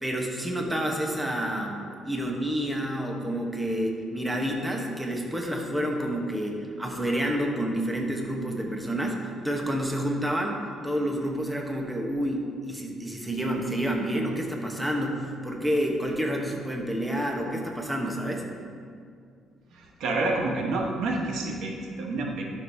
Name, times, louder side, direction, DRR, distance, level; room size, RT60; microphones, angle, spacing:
voice 1, 0.0-18.5, equal, 5° right, 0 dB, 1.0 m, -29 dB
voice 2, 19.7-22.4, right 2 dB, 75° right, 0 dB, 1.1 m, -29 dB
12.0 x 6.3 x 2.7 m, 2.2 s
cardioid pair, 110°, 0 cm